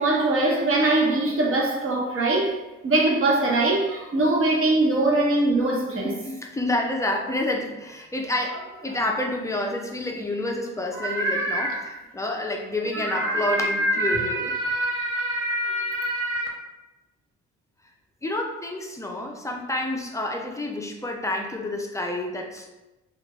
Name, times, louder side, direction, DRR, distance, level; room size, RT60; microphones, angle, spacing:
voice 1, 0.0-2.5 2.8-6.1 10.9-11.9 12.9-16.5, right 2 dB, 45° right, -1 dB, 0.9 m, -23 dB
voice 2, 5.9-14.5 18.2-22.7, left 1 dB, 10° left, 1 dB, 0.4 m, -29 dB
3.3 x 2.4 x 3.0 m, 1.0 s
cardioid pair, 90°, 30 cm